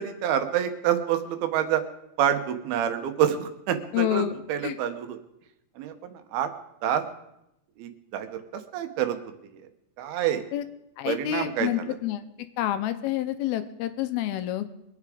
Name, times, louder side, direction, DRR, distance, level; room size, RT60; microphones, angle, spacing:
voice 1, 0.0-1.8 2.2-5.2 5.8-6.5 6.8-7.0 7.8-9.2 10.0-10.4 11.1-12.0, right 10 dB, 75° right, 8 dB, 2.8 m, -27 dB
voice 2, 3.9-4.4 4.6-4.8 10.5-10.6 11.0-12.2 12.6-14.7, left 13 dB, 80° left, 10 dB, 2.5 m, -28 dB
23.5 x 8.4 x 4.9 m, 0.84 s
omnidirectional pair, 4.7 m